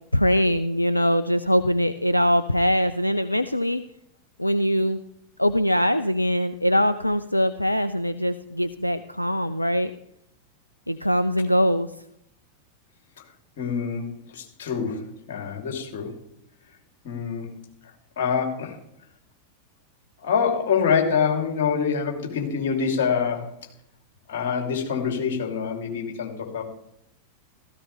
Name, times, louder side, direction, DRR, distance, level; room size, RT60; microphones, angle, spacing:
voice 1, 0.1-3.8 4.4-5.0 5.4-9.9 10.9-11.9, equal, 85° left, 12 dB, 0.4 m, -22 dB
voice 2, 13.6-16.1 17.0-17.5 18.2-18.8 20.2-23.5 24.3-26.6, left 6 dB, 55° left, 1 dB, 3.3 m, -25 dB
15.5 x 14.5 x 3.5 m, 0.74 s
figure-of-eight pair, 90°, 0 cm